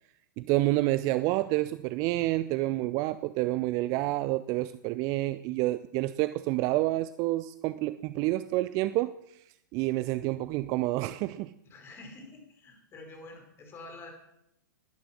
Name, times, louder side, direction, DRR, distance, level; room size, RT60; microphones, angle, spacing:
voice 1, 0.4-9.1 9.7-11.5, right 17 dB, 35° right, 14 dB, 0.6 m, -28 dB
voice 2, 11.6-14.1, left 2 dB, 25° left, 4 dB, 5.0 m, -47 dB
20.0 x 10.5 x 6.1 m, 0.81 s
figure-of-eight pair, 105°, 10 cm